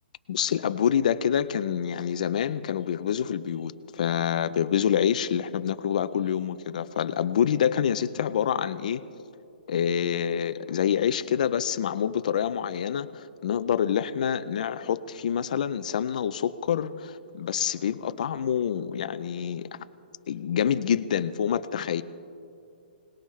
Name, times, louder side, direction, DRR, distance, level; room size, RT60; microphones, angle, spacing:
voice 1, 0.3-9.0 9.7-19.9 20.3-22.0, left 8 dB, 45° left, 13 dB, 0.4 m, -27 dB
22.0 x 19.0 x 3.2 m, 2.5 s
hypercardioid pair, 175°, 6 cm